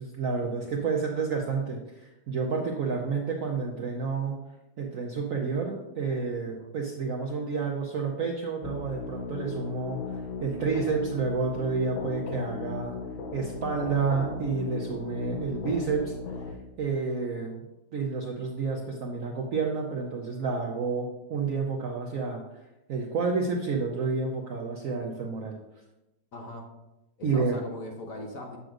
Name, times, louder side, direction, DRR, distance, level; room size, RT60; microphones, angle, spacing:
voice 1, 0.0-4.4 4.8-13.0 13.3-16.1 16.8-17.6 17.9-22.4 22.9-25.6 27.2-27.6, right 4 dB, 65° right, 0 dB, 0.8 m, -30 dB
sound 1, 8.6-16.5, left 4 dB, 80° left, 1.5 m, -37 dB
voice 2, 26.3-26.7 27.2-28.6, left 1 dB, 55° left, 1 dB, 1.1 m, -40 dB
7.6 x 6.9 x 2.5 m, 0.96 s
omnidirectional pair, 2.1 m